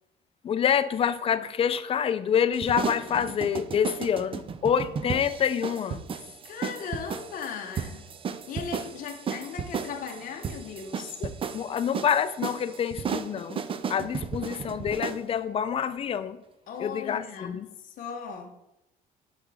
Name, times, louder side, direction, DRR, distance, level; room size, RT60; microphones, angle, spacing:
voice 1, 0.4-6.1 11.2-16.4 16.8-17.7, left 8 dB, 35° left, 0.4 m, -27 dB
sound 1, 2.5-15.2, right 6 dB, 30° right, 0.5 m, -34 dB
voice 2, 6.4-8.0 8.5-11.2 16.7-18.5, left 6 dB, 55° left, 0.8 m, -37 dB
6.3 x 5.0 x 4.8 m
cardioid pair, 110°, 17 cm